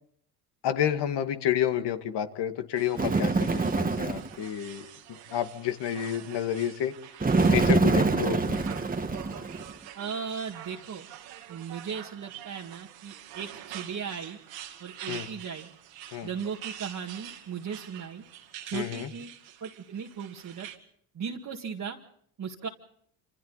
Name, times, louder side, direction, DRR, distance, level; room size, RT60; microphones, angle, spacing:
voice 1, 0.6-4.9 5.3-6.9 7.5-8.6 15.1-15.3 16.1-16.3 18.7-19.1, left 10 dB, 60° left, 7 dB, 2.1 m, -30 dB
sound 1, 2.8-20.8, right 11 dB, 80° right, 2.5 m, -46 dB
Bird, 2.9-4.3 7.2-9.7, right 3 dB, 20° right, 1.6 m, -25 dB
voice 2, 7.9-8.3 10.0-11.1 11.5-14.4 14.8-15.7 16.2-18.2 18.6-19.3 19.6-20.7 21.1-22.0 22.4-22.7, right 6 dB, 40° right, -2 dB, 2.0 m, -37 dB
27.5 x 26.5 x 4.1 m, 0.66 s
supercardioid pair, 80°, 45 cm